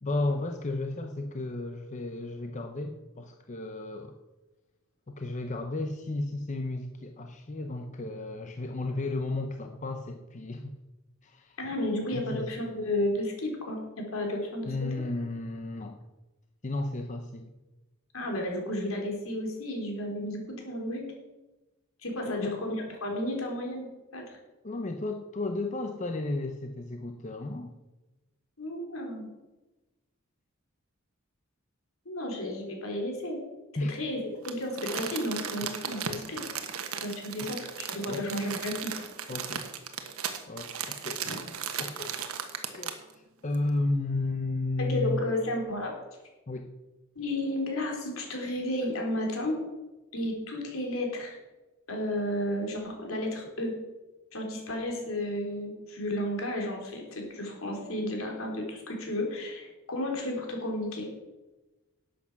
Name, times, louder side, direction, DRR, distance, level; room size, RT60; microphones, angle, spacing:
voice 1, 0.0-4.2 5.1-10.8 11.2-11.6 12.1-12.5 14.7-16.0 16.6-17.5 22.3-22.5 24.6-27.7 33.8-33.9 37.4-37.5 38.1-38.2 39.3-39.6 40.5-41.2 41.8-42.2 42.7-45.2 46.5-46.7, left 2 dB, 35° left, 5 dB, 0.7 m, -33 dB
voice 2, 11.6-14.7 18.1-21.0 22.0-22.7 23.0-24.4 28.6-29.3 32.0-33.4 33.9-34.2 34.4-36.5 37.0-38.9 41.2-41.4 44.8-45.9 47.1-49.6 50.1-51.3 51.9-53.7 54.3-61.1, left 1 dB, 70° left, 1 dB, 3.5 m, -32 dB
Crumpling crinkling, 34.4-43.1 43.5-43.6, right 7 dB, 90° right, 1.3 m, -36 dB
11.5 x 8.5 x 5.9 m, 1.1 s
head